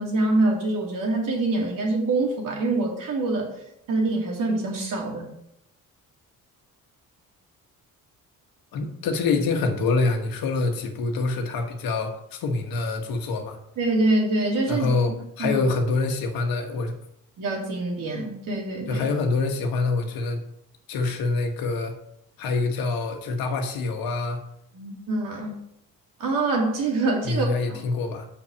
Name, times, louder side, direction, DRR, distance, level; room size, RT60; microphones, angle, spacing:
voice 1, 0.0-3.5 3.9-5.3 13.8-14.9 15.4-15.6 17.4-19.1 24.7-25.6 26.2-27.8, right 2 dB, 70° right, -1 dB, 2.7 m, -25 dB
voice 2, 8.7-13.6 14.7-16.9 18.9-20.4 20.9-21.9 22.4-24.4 27.2-28.3, left 3 dB, 90° left, 5 dB, 1.4 m, -25 dB
5.9 x 5.8 x 7.0 m, 0.77 s
cardioid pair, 105°, 34 cm